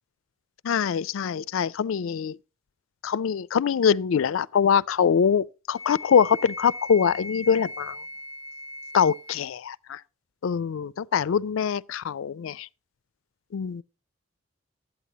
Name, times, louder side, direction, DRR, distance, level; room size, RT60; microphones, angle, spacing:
voice 1, 0.6-2.4 3.0-8.0 8.9-10.0 10.4-12.7 13.5-13.8, left 7 dB, 70° left, 0.4 m, -23 dB
Wind instrument woodwind instrument, 5.7-9.4, left 1 dB, 15° right, 0.6 m, -39 dB
12.5 x 8.9 x 2.8 m
head